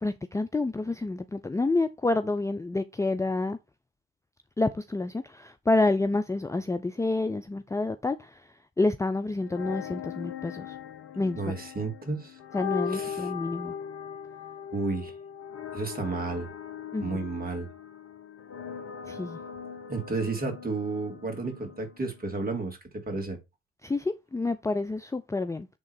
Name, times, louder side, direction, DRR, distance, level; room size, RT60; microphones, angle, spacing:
voice 1, 0.0-3.6 4.6-8.4 8.8-10.7 11.2-11.4 12.5-13.7 16.9-17.2 19.1-19.4 23.8-25.7, left 2 dB, 10° left, 0.6 m, -28 dB
sound 1, 9.4-22.3, left 8 dB, 50° left, 1.5 m, -39 dB
voice 2, 11.3-12.4 12.9-13.3 14.7-15.1 15.7-16.5 17.0-17.7 19.9-23.4, right 3 dB, 30° right, 3.1 m, -32 dB
8.5 x 3.7 x 4.8 m
hypercardioid pair, 50°, 30 cm